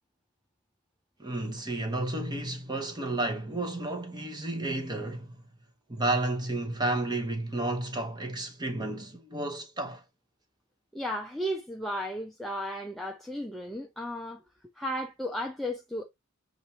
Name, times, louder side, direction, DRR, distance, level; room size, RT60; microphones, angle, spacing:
voice 1, 1.2-5.3 5.9-10.0, right 2 dB, 20° right, 0.8 m, -32 dB
voice 2, 10.9-14.4 14.8-16.1, equal, ahead, 0.4 m, -34 dB
6.6 x 2.5 x 2.7 m
head